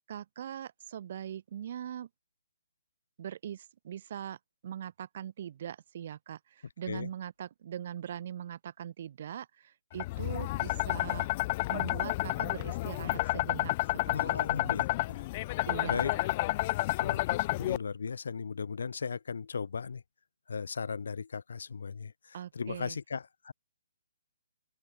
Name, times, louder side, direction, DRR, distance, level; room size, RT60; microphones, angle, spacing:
voice 1, 0.0-2.1 3.2-11.3 11.7-13.7 14.1-14.9 15.7-16.3 22.3-23.0, right 10 dB, 45° right, 3.7 m, -41 dB
sound 1, 10.0-17.8, left 19 dB, 35° left, 0.6 m, -30 dB
voice 2, 14.1-15.3 15.6-16.1 17.0-20.0 20.5-23.5, left 5 dB, 65° left, 2.3 m, -37 dB
open air
figure-of-eight pair, 135°, 0 cm